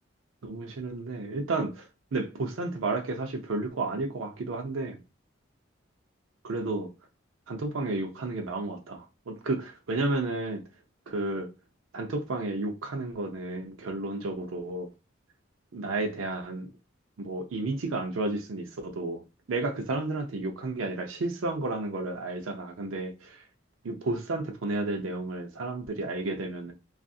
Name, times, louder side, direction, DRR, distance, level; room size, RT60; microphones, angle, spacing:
voice 1, 0.4-1.9 2.1-5.0 6.4-6.9 7.5-10.6 11.1-11.5 11.9-14.9 15.7-16.7 17.2-19.2 19.5-23.4 23.8-26.7, right 2 dB, 85° right, 0.5 m, -32 dB
2.6 x 2.5 x 2.4 m
head